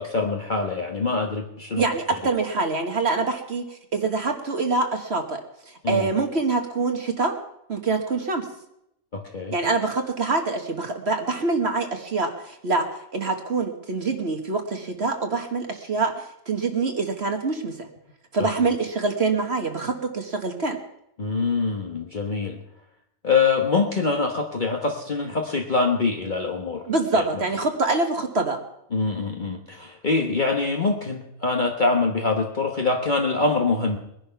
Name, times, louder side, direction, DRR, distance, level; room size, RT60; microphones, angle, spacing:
voice 1, 0.0-1.8 5.8-6.1 9.1-9.5 18.4-18.5 21.2-22.6 23.2-26.8 27.2-27.4 28.9-34.0, left 4 dB, 40° left, 2 dB, 1.3 m, -24 dB
voice 2, 1.8-7.3 7.7-8.5 9.5-17.9 18.3-20.8 26.8-28.6, right 3 dB, 55° right, 5 dB, 1.6 m, -25 dB
20.5 x 10.5 x 5.8 m, 0.79 s
omnidirectional pair, 1.4 m